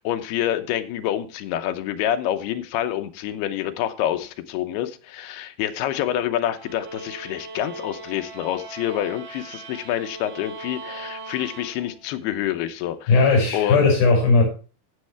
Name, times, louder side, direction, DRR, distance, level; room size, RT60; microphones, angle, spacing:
voice 1, 0.0-13.1 13.5-13.9, left 11 dB, 90° left, 2.8 m, -27 dB
sound 1, 6.5-12.2, right 4 dB, 80° right, 4.1 m, -39 dB
voice 2, 13.1-14.4, left 3 dB, 70° left, 7.3 m, -17 dB
16.5 x 6.4 x 3.4 m
omnidirectional pair, 4.4 m